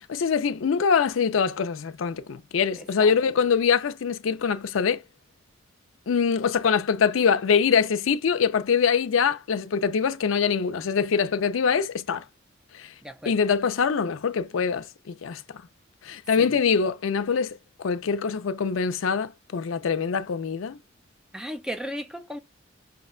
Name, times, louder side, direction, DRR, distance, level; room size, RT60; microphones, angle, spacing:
voice 1, 0.1-5.0 6.1-12.2 12.8-12.9 13.3-15.4 16.0-20.8, left 6 dB, 85° left, 0.4 m, -24 dB
voice 2, 13.0-13.3 16.4-16.5 21.3-22.4, equal, 5° right, 0.4 m, -35 dB
5.6 x 2.2 x 2.3 m
head